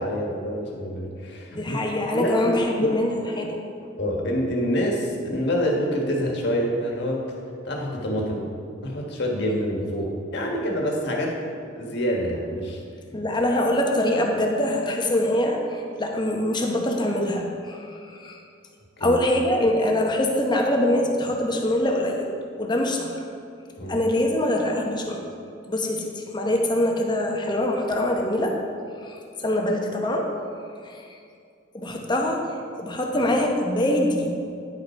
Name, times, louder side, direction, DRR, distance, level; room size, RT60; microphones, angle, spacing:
voice 1, 0.0-2.5 2.8-3.0 4.0-7.4 7.6-8.4 8.8-11.4 11.7-12.8 19.0-19.1 23.8-24.0, equal, 65° left, -1 dB, 1.5 m, -26 dB
voice 2, 1.6-3.6 13.1-18.4 19.0-22.3 22.6-23.2 23.9-25.2 25.7-28.6 29.0-30.3 30.8-31.0 31.7-32.4 32.8-34.3, left 1 dB, 25° left, 1 dB, 0.9 m, -24 dB
10.0 x 5.6 x 4.5 m, 2.4 s
head